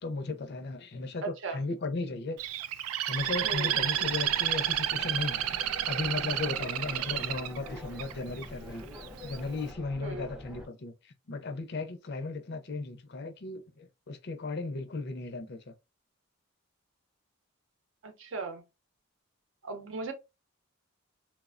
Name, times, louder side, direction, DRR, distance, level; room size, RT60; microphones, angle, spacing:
voice 1, 0.0-2.4 3.1-5.4 5.9-8.8 9.2-15.7, left 3 dB, 50° left, 0.5 m, -36 dB
Bird, 2.4-8.4 9.0-9.4, right 12 dB, 90° right, 0.3 m, -31 dB
sound 1, 3.2-10.7, left 1 dB, 5° right, 0.4 m, -46 dB
voice 2, 3.4-3.8 10.0-10.3 18.0-18.6 19.6-20.1, right 3 dB, 65° right, 0.6 m, -37 dB
3.1 x 2.1 x 2.4 m
head